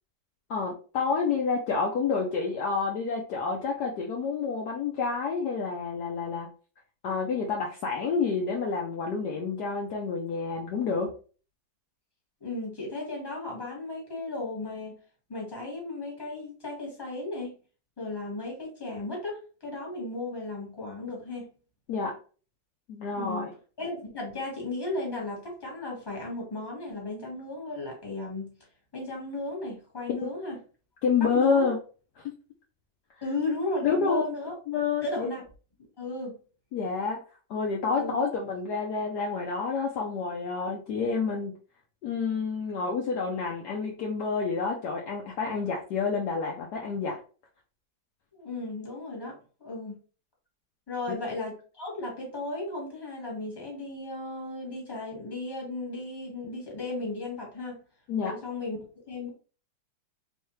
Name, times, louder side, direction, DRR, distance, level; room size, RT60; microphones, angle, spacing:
voice 1, 0.5-6.5 7.0-11.1 21.9-22.2 22.9-23.5 30.2-30.3 31.0-31.8 33.8-34.2 34.7-35.3 36.7-37.2 37.5-41.5 42.0-47.2 58.1-58.3, left 5 dB, 65° left, -1 dB, 1.1 m, -29 dB
voice 2, 12.4-15.0 15.3-17.6 18.0-21.5 23.1-28.5 28.9-30.6 31.2-31.7 33.2-34.5 35.0-35.4 36.0-36.4 38.0-38.2 48.3-50.0 50.9-57.8 58.2-58.8 59.1-59.3, left 2 dB, 15° left, -2 dB, 1.4 m, -35 dB
3.5 x 3.1 x 3.1 m, 0.37 s
omnidirectional pair, 2.1 m